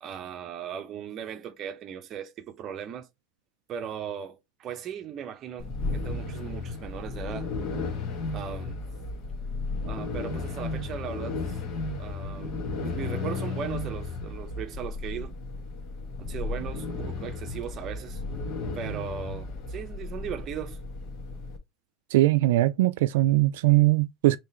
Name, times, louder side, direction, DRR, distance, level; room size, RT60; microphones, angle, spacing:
voice 1, 0.0-3.1 3.7-7.5 8.3-8.8 9.8-11.6 12.0-15.3 16.2-18.2 18.7-20.8, right 8 dB, 30° right, 0.8 m, -38 dB
sound 1, 5.6-21.6, left 3 dB, 40° left, 1.2 m, -34 dB
voice 2, 22.1-24.4, right 17 dB, 85° right, 0.3 m, -21 dB
3.7 x 2.9 x 4.2 m
supercardioid pair, 165°, 0 cm